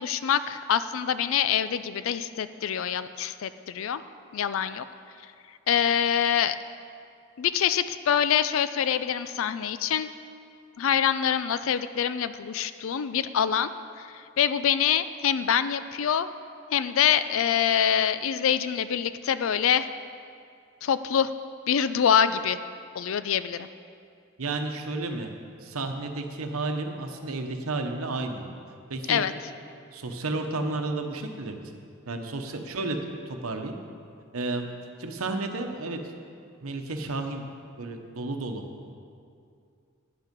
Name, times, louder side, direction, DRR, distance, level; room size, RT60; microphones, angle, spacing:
voice 1, 0.0-4.0 4.3-4.8 5.7-6.6 7.4-10.1 10.8-13.7 14.0-16.3 16.7-19.9 20.8-21.3 21.7-22.6 22.9-23.7 29.1-29.3, left 8 dB, 65° left, 12 dB, 0.4 m, -25 dB
voice 2, 24.4-25.3 25.6-28.5 28.9-29.2 29.9-31.6 32.1-33.0 33.3-33.7 34.3-34.7 35.0-36.0 36.6-37.4 37.8-38.6, right 2 dB, 85° right, 5 dB, 0.9 m, -32 dB
10.0 x 8.1 x 5.2 m, 2.4 s
head